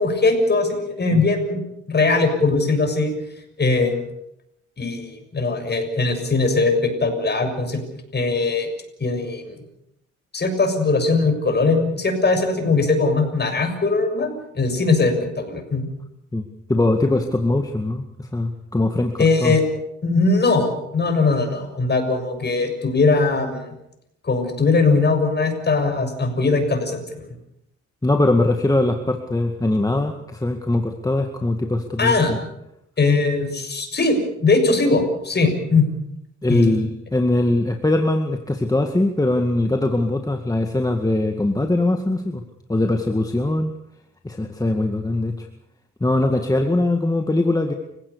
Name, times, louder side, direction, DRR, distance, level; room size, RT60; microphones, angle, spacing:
voice 1, 0.0-1.6 1.9-3.1 3.6-4.0 4.8-7.8 8.1-8.7 9.0-9.6 10.3-15.9 19.2-19.6 20.0-23.7 24.2-27.3 32.0-32.3 33.0-35.9 36.5-36.8, left 3 dB, 35° left, 6 dB, 6.6 m, -20 dB
voice 2, 16.3-19.6 28.0-32.4 36.4-42.4 42.7-43.7 44.2-45.5 46.0-47.7, left 2 dB, 10° left, 4 dB, 2.1 m, -21 dB
30.0 x 16.5 x 6.9 m, 0.81 s
cardioid pair, 90°, 30 cm